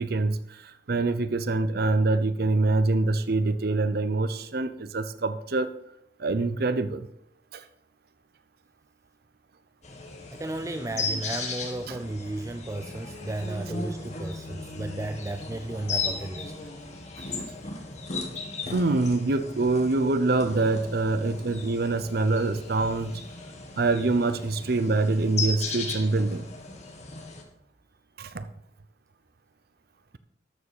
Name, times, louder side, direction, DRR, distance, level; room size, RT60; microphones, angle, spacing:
voice 1, 0.0-5.7 6.2-7.1 7.5-7.6 10.9-11.2 11.9-12.0 18.7-23.1 23.8-26.5 28.2-28.4, right 3 dB, 60° right, 11 dB, 0.7 m, -25 dB
sound 1, 9.8-27.4, left 3 dB, 40° left, 2.0 m, -36 dB
voice 2, 10.3-16.5 18.7-18.8, right 2 dB, 20° right, 8 dB, 0.5 m, -34 dB
13.0 x 7.3 x 5.5 m, 0.75 s
head